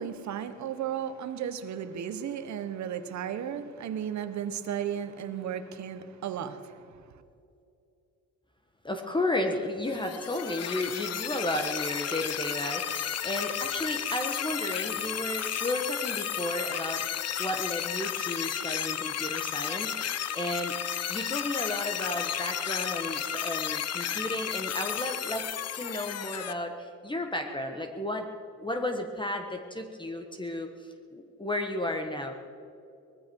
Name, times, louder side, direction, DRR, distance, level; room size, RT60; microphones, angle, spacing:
voice 1, 0.0-6.7, right 8 dB, 70° right, 10 dB, 1.3 m, -34 dB
voice 2, 8.8-17.0 17.4-20.8 21.1-28.3 28.6-30.7 31.1-32.3, left 1 dB, 15° left, 4 dB, 1.4 m, -33 dB
sound 1, 9.9-26.5, left 9 dB, 55° left, 0.9 m, -33 dB
20.5 x 14.5 x 4.8 m, 2.6 s
cardioid pair, 90°, 30 cm